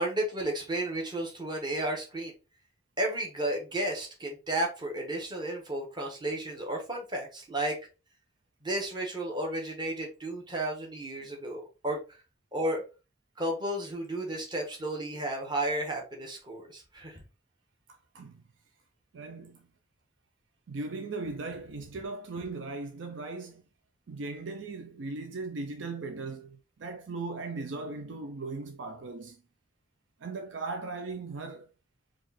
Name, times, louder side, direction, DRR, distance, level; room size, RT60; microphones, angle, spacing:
voice 1, 0.0-2.3 3.0-7.8 8.6-12.0 12.5-12.8 13.4-17.2, right 1 dB, 25° right, 1.2 m, -33 dB
voice 2, 17.9-18.4 19.1-19.7 20.7-23.6 24.1-29.4 30.2-31.7, right 3 dB, 75° right, 0.5 m, -38 dB
4.7 x 2.5 x 4.1 m
head